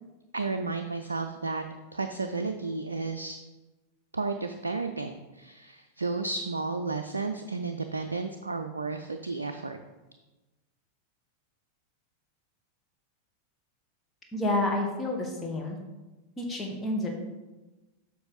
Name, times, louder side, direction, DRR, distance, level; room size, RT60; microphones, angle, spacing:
voice 1, 0.3-1.6 1.9-3.4 4.1-9.8, right 3 dB, 75° right, 6 dB, 0.4 m, -32 dB
voice 2, 14.3-15.8 16.4-17.1, left 2 dB, 15° left, 0 dB, 1.4 m, -29 dB
7.8 x 5.3 x 4.1 m, 1.1 s
figure-of-eight pair, 90°, 0 cm